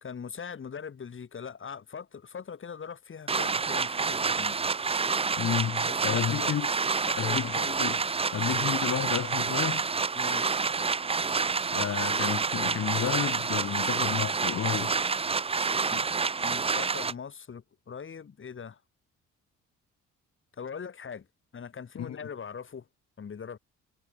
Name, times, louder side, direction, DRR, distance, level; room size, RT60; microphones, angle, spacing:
voice 1, 0.0-4.6 5.9-6.5 7.1-7.7 10.2-10.7 15.9-16.1 16.4-18.8 20.5-21.3 21.5-22.9 23.2-23.6, left 6 dB, 40° left, 3.4 m, -41 dB
sound 1, 3.3-17.1, right 4 dB, 20° right, 0.6 m, -28 dB
voice 2, 5.4-6.7 7.2-8.0 8.3-9.9 11.5-14.9 22.0-22.2, left 10 dB, 60° left, 2.5 m, -31 dB
cardioid pair, 90°, 30 cm